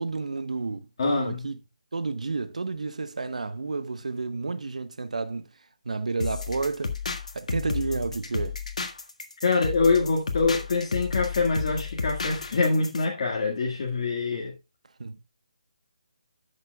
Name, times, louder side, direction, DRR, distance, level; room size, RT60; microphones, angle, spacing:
voice 1, 0.0-1.6 1.9-5.5 5.8-7.0 7.3-8.6 15.0-15.2, right 3 dB, 70° right, 1.0 m, -31 dB
voice 2, 1.0-1.4 9.4-14.5, left 4 dB, 45° left, 1.8 m, -25 dB
sound 1, 6.2-13.0, left 5 dB, 70° left, 1.6 m, -32 dB
13.5 x 6.6 x 2.3 m
figure-of-eight pair, 160°, 4 cm